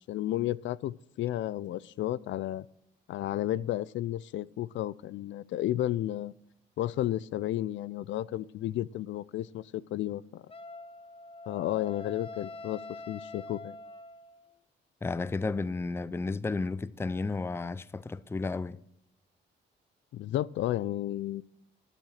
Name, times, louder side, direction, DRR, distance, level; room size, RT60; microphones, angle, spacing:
voice 1, 0.1-2.7 3.1-6.3 6.8-10.4 11.5-12.8 13.1-13.7 20.1-21.4, left 13 dB, 70° left, 0.4 m, -32 dB
Wind instrument woodwind instrument, 10.5-14.5, left 2 dB, 30° left, 0.9 m, -45 dB
voice 2, 15.0-18.8, left 3 dB, 10° left, 0.4 m, -32 dB
13.0 x 7.6 x 6.4 m
cardioid pair, 90°, 20 cm